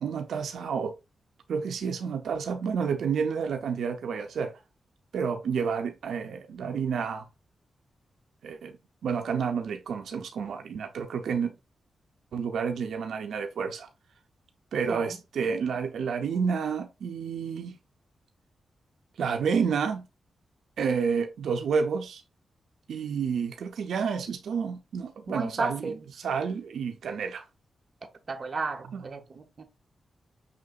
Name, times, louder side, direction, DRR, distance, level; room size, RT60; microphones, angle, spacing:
voice 1, 0.0-0.9 1.5-4.5 5.1-7.3 8.4-8.7 9.0-11.5 12.3-13.9 14.7-17.8 19.2-20.0 20.8-22.2 22.9-27.4 28.9-29.0, right 6 dB, 85° right, 0.5 m, -30 dB
voice 2, 14.8-15.2 25.3-26.0 28.3-29.6, right 3 dB, 45° right, 0.9 m, -33 dB
5.7 x 3.7 x 2.3 m
cardioid pair, 95°, 0 cm